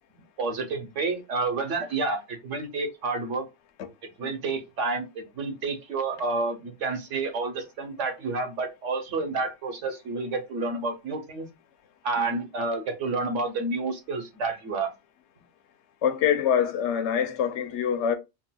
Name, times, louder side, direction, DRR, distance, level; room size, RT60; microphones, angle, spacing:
voice 1, 0.4-3.4 4.2-11.5 12.0-14.9, right 3 dB, 85° right, 1.2 m, -29 dB
voice 2, 16.0-18.1, left 8 dB, 75° left, 0.9 m, -25 dB
3.8 x 2.2 x 2.2 m
omnidirectional pair, 1.2 m